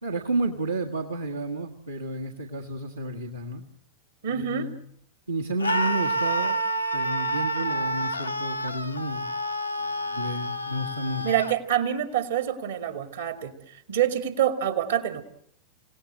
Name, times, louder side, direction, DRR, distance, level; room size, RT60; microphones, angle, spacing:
voice 1, 0.0-3.6 4.3-4.9 5.3-6.6 6.9-9.3 9.8-11.4, right 2 dB, 85° right, -2 dB, 1.6 m, -31 dB
voice 2, 4.2-4.7 11.2-15.2, right 10 dB, 65° right, 8 dB, 2.1 m, -26 dB
Screaming, 5.6-11.6, right 1 dB, 85° left, 1.0 m, -28 dB
27.5 x 17.5 x 7.7 m, 0.71 s
figure-of-eight pair, 90°, 0 cm